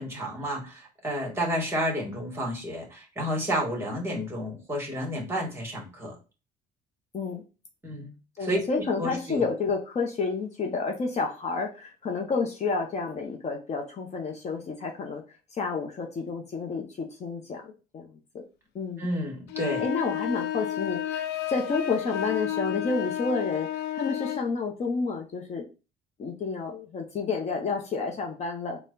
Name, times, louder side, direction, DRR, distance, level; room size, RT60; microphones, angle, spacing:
voice 1, 0.0-6.2 7.8-8.1 8.4-8.6 9.0-9.5 19.0-19.9, equal, 15° right, 0 dB, 1.7 m, -31 dB
voice 2, 8.4-15.2 15.5-18.4 18.7-19.1 19.8-25.7 26.2-28.8, left 4 dB, 40° left, 2 dB, 0.8 m, -30 dB
sound 1, 19.5-24.5, left 11 dB, 85° left, 0.4 m, -31 dB
4.3 x 2.3 x 3.8 m, 0.32 s
cardioid pair, 110°, 17 cm